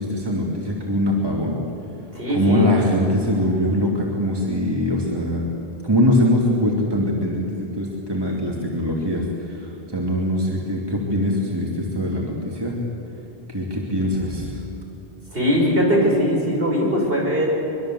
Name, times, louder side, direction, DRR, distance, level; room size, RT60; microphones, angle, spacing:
voice 1, 0.0-1.6 2.3-5.5 5.8-12.8 13.5-14.6, left 1 dB, 20° right, -2 dB, 2.8 m, -22 dB
voice 2, 2.1-2.7 15.3-17.5, equal, 60° right, -2 dB, 6.3 m, -20 dB
23.5 x 23.5 x 7.9 m, 2.8 s
omnidirectional pair, 1.1 m